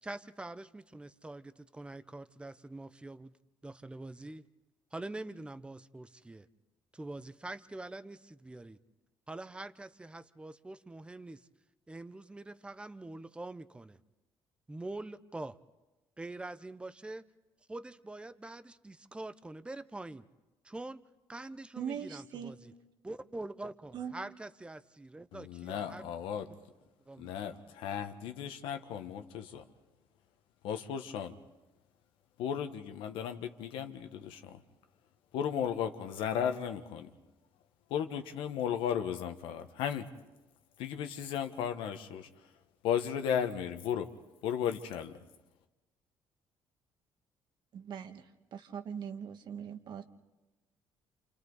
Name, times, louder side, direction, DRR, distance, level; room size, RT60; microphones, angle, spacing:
voice 1, 0.0-3.3 3.6-4.4 4.9-6.5 6.9-8.8 9.3-11.5 11.9-14.0 14.7-15.6 16.2-17.2 17.7-20.2 20.6-21.0 21.3-22.7 23.0-26.0 27.1-27.6, right 2 dB, 10° right, 13 dB, 0.7 m, -44 dB
voice 2, 21.8-22.5 23.9-24.1 47.7-48.2 48.5-50.0, right 8 dB, 60° right, 7 dB, 1.5 m, -40 dB
voice 3, 25.3-26.5 27.2-29.6 30.6-31.3 32.4-34.6 35.3-37.1 37.9-40.1 40.8-42.3 42.8-44.1 44.4-45.2, left 8 dB, 90° left, 7 dB, 1.4 m, -35 dB
29.0 x 28.5 x 4.1 m, 1.1 s
cardioid pair, 115°, 9 cm